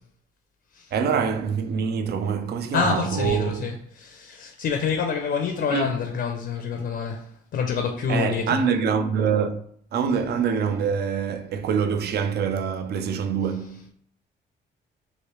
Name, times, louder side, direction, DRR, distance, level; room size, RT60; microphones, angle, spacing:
voice 1, 0.9-3.7 5.7-6.0 8.1-9.6 9.9-13.9, right 6 dB, 55° right, 0.4 m, -25 dB
voice 2, 2.7-7.2 7.5-8.6, left 6 dB, 60° left, 0.5 m, -27 dB
3.1 x 2.6 x 3.0 m
cardioid pair, 90°, 20 cm